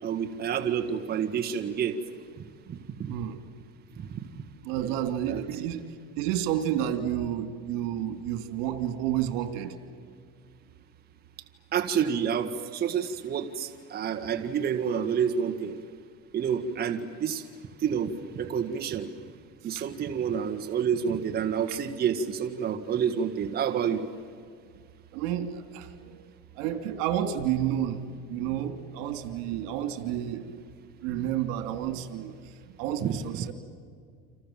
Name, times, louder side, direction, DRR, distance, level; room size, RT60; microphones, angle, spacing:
voice 1, 0.0-2.0 2.7-3.2 4.0-4.2 4.8-4.9 5.3-5.6 11.7-15.8 16.3-17.5 17.8-19.1 19.6-24.0 33.0-33.5, right 7 dB, 30° right, 5 dB, 1.7 m, -29 dB
voice 2, 4.6-5.9 6.2-9.7 19.7-19.9 21.7-21.8 25.1-26.3 26.5-30.5 31.0-32.4 32.8-33.5, right 10 dB, 80° right, 8 dB, 2.9 m, -30 dB
29.5 x 27.0 x 7.5 m, 2.1 s
cardioid pair, 145°, 29 cm